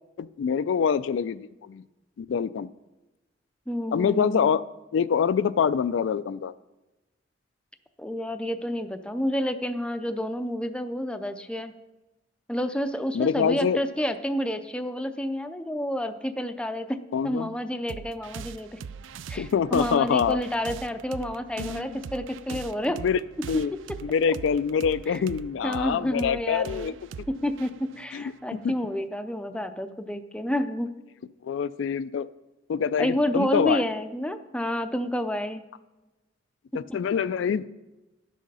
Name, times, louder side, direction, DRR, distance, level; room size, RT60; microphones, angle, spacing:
voice 1, 0.2-1.8 2.2-2.7 3.9-4.6 4.9-6.5 13.1-13.8 17.1-17.5 19.4-20.4 21.6-21.9 22.5-22.6 23.0-23.2 23.5-23.7 24.0-26.9 28.1-28.2 28.6-28.7 31.4-32.3 32.7-33.8 36.7-37.7, left 7 dB, 70° left, 15 dB, 0.3 m, -25 dB
voice 2, 3.7-4.5 8.0-11.7 12.5-18.8 19.3-23.0 23.4-23.6 25.1-25.2 25.6-26.9 27.3-30.9 33.0-35.6 36.9-37.0, equal, 5° left, 8 dB, 0.5 m, -29 dB
sound 1, 17.9-29.0, right 6 dB, 80° right, 0.4 m, -41 dB
11.0 x 6.4 x 5.5 m, 1.0 s
head